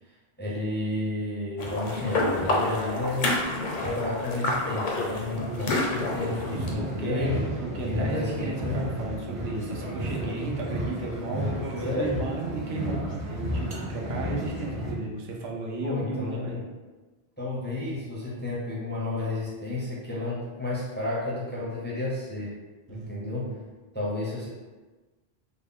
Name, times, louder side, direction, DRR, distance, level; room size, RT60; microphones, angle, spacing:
voice 1, 0.1-3.3 3.8-7.4 7.8-9.0 11.8-12.3 15.8-16.6 17.4-22.5 22.9-23.5 23.9-24.5, left 2 dB, 15° left, -6 dB, 0.5 m, -31 dB
sound 1, 1.6-6.7, left 2 dB, 55° left, 0.7 m, -28 dB
voice 2, 5.3-5.9 6.5-16.7 22.9-23.6, right 2 dB, 80° right, -1 dB, 0.9 m, -34 dB
sound 2, 6.3-14.9, right 1 dB, 40° right, 0.6 m, -33 dB
3.6 x 2.0 x 3.6 m, 1.3 s
omnidirectional pair, 1.0 m